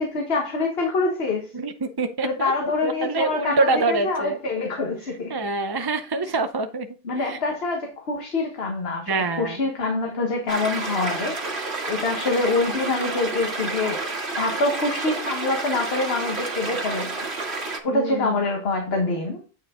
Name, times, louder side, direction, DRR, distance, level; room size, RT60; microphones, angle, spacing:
voice 1, 0.0-1.5 2.2-5.3 6.2-6.3 7.0-11.5 11.9-14.1 14.4-17.3 17.8-19.4, left 3 dB, 70° left, 1.6 m, -25 dB
voice 2, 1.5-4.4 5.3-6.9 7.2-7.4 9.1-9.6 17.9-18.4, right 3 dB, 30° right, 0.5 m, -25 dB
sound 1, 10.5-17.8, right 3 dB, 80° right, 1.9 m, -30 dB
9.0 x 5.1 x 3.7 m
omnidirectional pair, 1.1 m